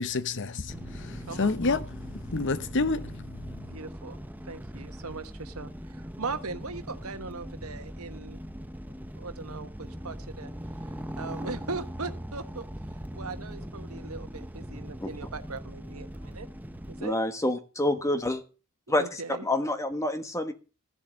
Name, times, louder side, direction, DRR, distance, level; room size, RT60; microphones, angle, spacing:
voice 1, 0.0-3.8, left 3 dB, 55° left, 0.8 m, -30 dB
sound 1, 0.7-17.0, equal, 10° right, 0.7 m, -40 dB
voice 2, 3.7-4.2 4.4-8.4 9.2-10.5 11.2-12.7 13.1-16.5 16.9-17.2 19.0-19.5, right 4 dB, 75° right, 1.3 m, -39 dB
voice 3, 17.0-18.4 18.9-20.5, left 1 dB, 15° left, 1.3 m, -28 dB
14.5 x 7.1 x 6.3 m
head